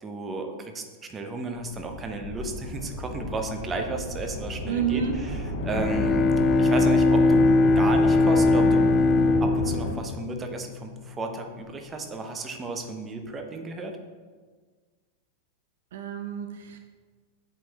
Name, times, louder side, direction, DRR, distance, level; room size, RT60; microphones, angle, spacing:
voice 1, 0.0-5.0 5.6-6.3 6.6-7.5 7.7-8.8 9.4-14.0, right 3 dB, 20° right, 5 dB, 0.7 m, -33 dB
sound 1, 1.7-9.9, left 2 dB, 55° left, 0.9 m, -33 dB
voice 2, 4.7-5.2 15.9-16.8, right 8 dB, 60° right, 6 dB, 0.4 m, -29 dB
Bowed string instrument, 5.5-11.2, left 3 dB, 25° left, 0.4 m, -21 dB
7.8 x 4.5 x 3.2 m, 1.5 s
figure-of-eight pair, 90°, 0 cm